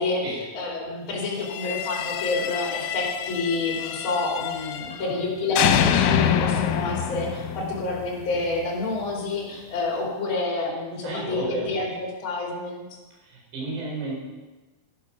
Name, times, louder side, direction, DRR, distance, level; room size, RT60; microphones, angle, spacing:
voice 1, 0.0-12.8, left 3 dB, 30° left, -1 dB, 3.1 m, -28 dB
sound 1, 1.4-5.2 5.6-8.6, left 9 dB, 80° left, 3.0 m, -26 dB
voice 2, 11.0-11.7 13.2-14.2, right 2 dB, 65° right, -5 dB, 6.3 m, -32 dB
11.5 x 11.5 x 5.9 m, 1.2 s
omnidirectional pair, 5.1 m